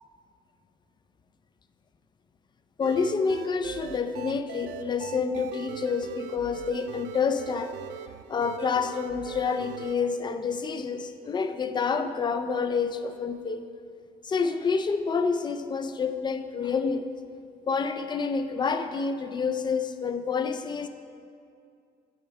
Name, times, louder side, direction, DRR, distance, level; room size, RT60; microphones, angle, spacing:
voice 1, 2.8-7.7 8.3-13.6 14.2-17.1 17.7-20.9, left 5 dB, 25° left, 9 dB, 0.4 m, -28 dB
sound 1, 2.8-10.0, right 11 dB, 85° right, 0.4 m, -41 dB
9.1 x 4.4 x 4.5 m, 2.3 s
cardioid pair, 110°, 17 cm